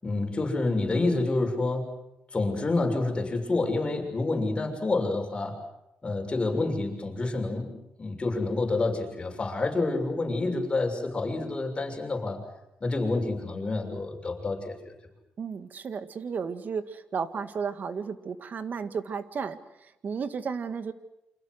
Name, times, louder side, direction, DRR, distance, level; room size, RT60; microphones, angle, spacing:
voice 1, 0.0-2.0 2.3-5.6 6.0-12.4 12.8-14.9, left 2 dB, 30° left, 2 dB, 6.7 m, -28 dB
voice 2, 15.4-20.9, right 6 dB, 55° right, 10 dB, 1.9 m, -33 dB
29.0 x 26.0 x 6.5 m, 0.86 s
cardioid pair, 90°, 4 cm